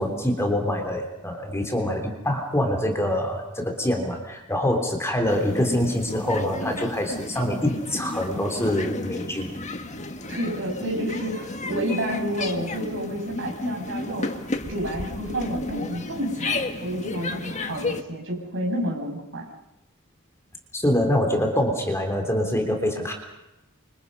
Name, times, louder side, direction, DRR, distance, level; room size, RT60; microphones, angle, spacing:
voice 1, 0.0-9.6 20.7-23.1, left 1 dB, 10° left, 4 dB, 3.4 m, -25 dB
sound 1, 5.3-18.0, left 2 dB, 30° left, 1.7 m, -32 dB
voice 2, 10.3-19.4, right 1 dB, 60° right, 2 dB, 6.8 m, -30 dB
29.0 x 26.5 x 5.5 m, 0.95 s
head